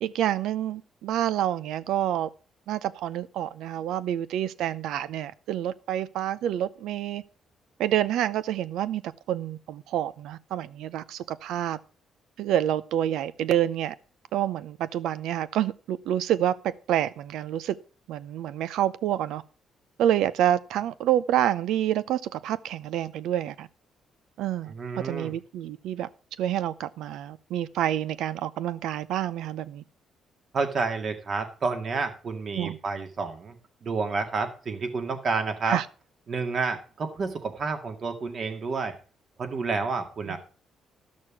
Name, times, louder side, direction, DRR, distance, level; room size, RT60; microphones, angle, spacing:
voice 1, 0.0-2.3 2.7-7.2 7.8-9.0 9.3-11.8 12.4-13.9 14.3-17.8 18.1-19.4 20.0-23.7 24.4-24.7 25.0-26.1 26.4-29.8 32.5-32.8 35.7-35.9 40.3-40.4, right 11 dB, 85° right, 0.6 m, -28 dB
voice 2, 24.7-25.3 30.5-33.6 33.8-35.8 36.3-38.9 39.4-40.4, right 4 dB, 50° right, 2.1 m, -30 dB
13.0 x 6.4 x 5.9 m
cardioid pair, 90°, 0 cm